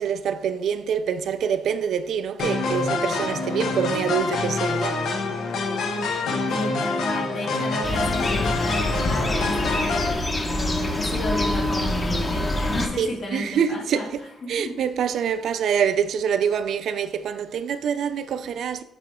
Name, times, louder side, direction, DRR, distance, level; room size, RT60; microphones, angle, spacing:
voice 1, 0.0-5.0 13.0-14.2 14.5-18.8, right 7 dB, 70° right, 0.4 m, -25 dB
sound 1, 2.4-10.1, left 3 dB, 80° left, 0.9 m, -26 dB
voice 2, 6.5-14.1 14.4-14.8, left 1 dB, 60° left, 2.2 m, -32 dB
sound 2, 7.8-12.9, left 1 dB, 30° left, 1.2 m, -25 dB
8.6 x 3.3 x 3.6 m
cardioid pair, 80°, 0 cm